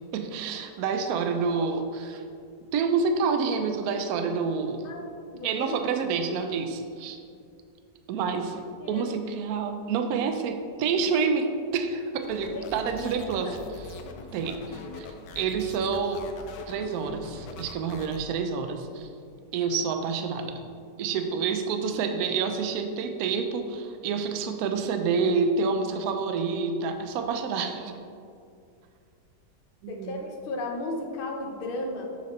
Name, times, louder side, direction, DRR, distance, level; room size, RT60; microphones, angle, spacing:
voice 1, 0.1-2.2 2.7-4.9 5.4-7.2 8.1-8.6 8.9-13.6 14.3-15.1 15.4-16.2 16.7-19.1 19.5-20.6 21.0-28.0 29.8-30.2, right 5 dB, 70° right, 6 dB, 1.0 m, -28 dB
voice 2, 4.8-5.8 8.8-9.1 10.9-11.0 12.5-12.7 13.2-13.5 29.9-32.1, left 2 dB, 50° left, 1 dB, 0.7 m, -35 dB
sound 1, 12.2-18.2, left 4 dB, 70° left, 1.1 m, -43 dB
7.1 x 5.7 x 3.1 m, 2.4 s
omnidirectional pair, 1.9 m